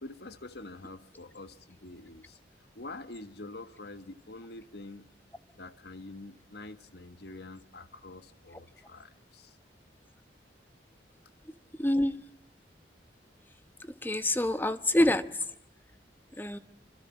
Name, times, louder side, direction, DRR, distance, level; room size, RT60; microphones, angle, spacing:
voice 1, 0.0-2.4 2.7-5.1 5.6-9.6, left 2 dB, 65° left, 11 dB, 1.6 m, -46 dB
voice 2, 11.8-12.2 14.0-15.4 16.4-16.6, left 1 dB, 10° left, 12 dB, 1.0 m, -26 dB
27.0 x 25.5 x 7.2 m, 0.68 s
head